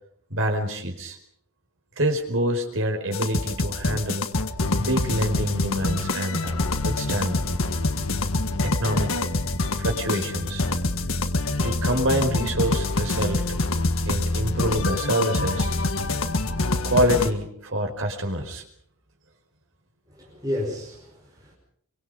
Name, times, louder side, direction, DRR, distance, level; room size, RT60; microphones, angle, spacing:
voice 1, 0.3-1.2 2.0-4.2 4.8-6.5 6.8-7.4 8.6-9.3 9.8-10.6 11.6-13.4 14.1-15.7 16.8-18.6, equal, 65° right, 4 dB, 4.8 m, -26 dB
sound 1, 3.1-17.3, left 2 dB, 70° left, 1.7 m, -25 dB
voice 2, 20.1-21.5, left 1 dB, 15° right, -3 dB, 5.5 m, -32 dB
24.5 x 24.5 x 5.4 m, 0.66 s
head